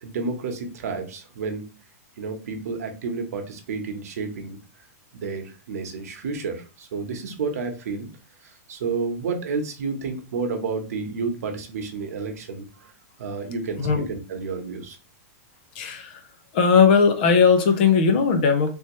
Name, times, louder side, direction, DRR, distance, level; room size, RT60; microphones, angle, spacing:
voice 1, 0.0-1.6 2.2-4.6 5.1-8.1 8.4-12.9 13.2-15.0, right 4 dB, 75° right, 1.0 m, -30 dB
voice 2, 13.5-14.1 15.7-16.2 16.5-18.7, left 5 dB, 40° left, 0.5 m, -19 dB
3.4 x 2.8 x 3.0 m
supercardioid pair, 175°, 8 cm